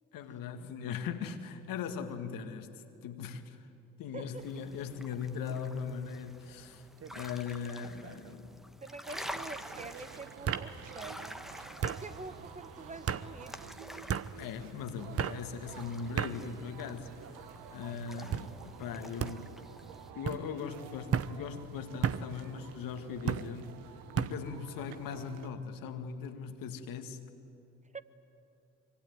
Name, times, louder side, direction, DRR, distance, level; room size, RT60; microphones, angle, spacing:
voice 1, 0.1-3.7 4.0-6.9 7.1-8.6 14.4-17.4 17.7-19.6 20.1-23.8 24.2-27.2, left 6 dB, 65° left, 2.0 m, -40 dB
voice 2, 4.1-4.6 8.8-11.4 11.7-13.7 27.9-28.0, right 3 dB, 20° right, 1.3 m, -46 dB
sound 1, 4.4-20.1, equal, ahead, 1.4 m, -49 dB
sound 2, 7.0-7.4 7.8-8.3 9.4-9.5 10.5-10.7 11.8-12.0 13.1-13.3 14.1-14.3 15.2-15.4 16.2-16.4 17.1-17.5 18.3-18.5 19.2-19.4 20.2-20.4 21.1-21.3 22.0-22.2 23.3-23.5 24.2-24.4, right 8 dB, 40° right, 1.0 m, -33 dB
sound 3, 9.1-25.5, right 9 dB, 75° right, 1.5 m, -50 dB
25.0 x 24.0 x 9.6 m
hypercardioid pair, 55°, 36 cm